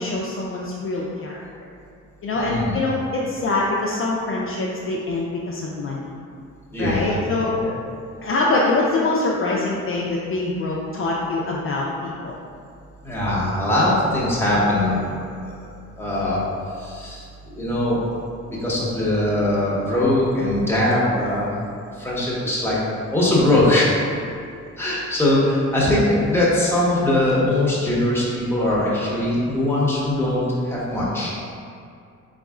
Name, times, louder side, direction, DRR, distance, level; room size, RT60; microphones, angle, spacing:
voice 1, 0.0-1.4 2.2-6.1 6.8-7.5 8.2-12.4, left 2 dB, 45° left, -4 dB, 0.5 m, -24 dB
voice 2, 2.3-2.8 6.7-7.1 7.6-7.7 13.0-15.1 15.4-15.7 16.0-16.4 16.8-18.1 18.5-21.5 22.0-22.8 23.1-23.9 24.8-31.5, left 1 dB, 10° left, -7 dB, 1.2 m, -21 dB
4.0 x 3.9 x 2.4 m, 2.4 s
cardioid pair, 90°, 30 cm